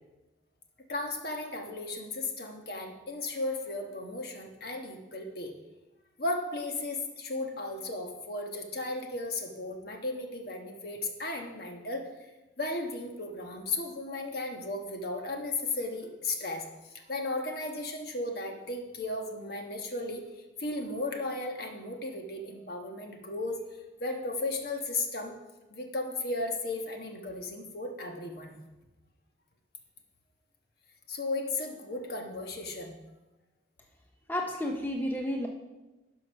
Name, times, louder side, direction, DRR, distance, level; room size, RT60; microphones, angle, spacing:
voice 1, 0.9-5.5 6.2-12.1 12.6-20.2 20.6-23.6 24.0-25.4 25.7-28.6 31.1-32.9, left 2 dB, 55° left, 3 dB, 1.3 m, -35 dB
voice 2, 34.3-35.5, left 1 dB, 10° left, 1 dB, 0.6 m, -31 dB
11.5 x 5.3 x 5.6 m, 1.1 s
head